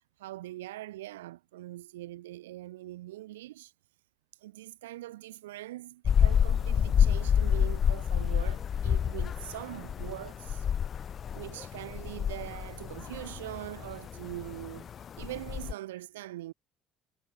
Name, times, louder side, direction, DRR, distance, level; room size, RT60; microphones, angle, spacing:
voice 1, 0.2-3.7 4.4-10.7 11.3-14.9 15.2-16.5, right 16 dB, 75° right, 4.1 m, -42 dB
sound 1, 6.1-15.7, left 8 dB, 45° left, 1.0 m, -28 dB
figure-of-eight pair, 55°, 0 cm